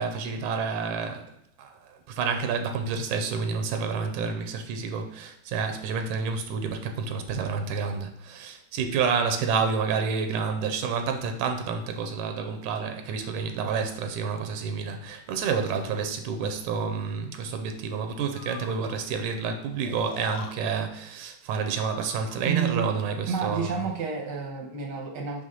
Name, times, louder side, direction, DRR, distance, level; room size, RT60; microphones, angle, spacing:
voice 1, 0.0-1.3 1.6-23.8, right 5 dB, 85° right, 5 dB, 2.0 m, -29 dB
Breathing, 18.3-19.0 19.8-20.6 21.7-22.5, left 6 dB, 85° left, 1.2 m, -42 dB
voice 2, 22.4-22.9 23.3-25.4, right 6 dB, 65° right, 1 dB, 1.0 m, -30 dB
6.4 x 3.3 x 5.3 m, 0.76 s
omnidirectional pair, 3.5 m